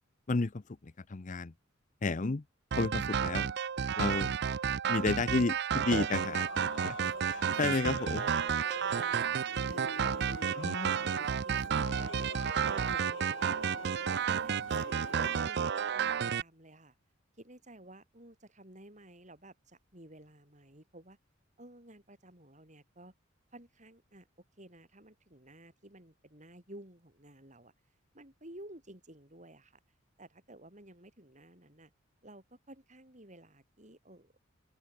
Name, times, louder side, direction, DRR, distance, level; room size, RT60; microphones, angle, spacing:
voice 1, 0.3-1.5 2.0-2.4 2.8-3.5 4.0-4.3 4.9-6.5 6.8-7.0 7.2-8.3 10.6-10.9, left 3 dB, 40° left, 0.6 m, -32 dB
sound 1, 2.7-16.4, right 7 dB, 55° right, 0.5 m, -32 dB
Singing / Musical instrument, 6.1-15.4, left 4 dB, 65° left, 1.3 m, -46 dB
voice 2, 8.7-9.4 9.7-12.1 12.5-13.8 14.3-16.9 17.4-21.2 21.6-23.1 23.5-24.3 24.6-27.7 28.1-29.8 30.2-31.9 32.2-34.3, right 1 dB, 35° right, 7.9 m, -54 dB
open air
head